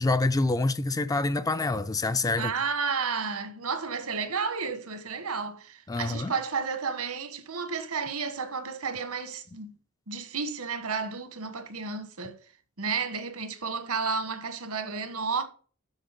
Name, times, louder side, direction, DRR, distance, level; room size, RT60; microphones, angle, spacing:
voice 1, 0.0-2.5 5.9-6.3, left 2 dB, 15° left, 0.4 m, -26 dB
voice 2, 2.4-9.7 10.1-12.4 12.8-15.4, right 5 dB, 80° right, 1.4 m, -32 dB
8.0 x 6.2 x 5.2 m
head